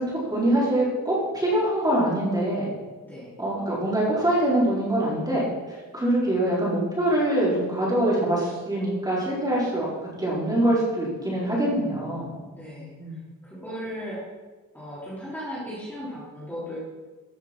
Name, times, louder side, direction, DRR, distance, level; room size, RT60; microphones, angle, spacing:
voice 1, 0.0-2.6 3.4-5.5 5.9-9.9 10.2-12.3 12.7-13.1, right 1 dB, 10° right, -6 dB, 4.3 m, -24 dB
voice 2, 12.5-14.2 14.7-16.8, equal, 5° left, -9 dB, 3.6 m, -37 dB
14.0 x 7.0 x 6.0 m, 1.3 s
cardioid pair, 155°, 33 cm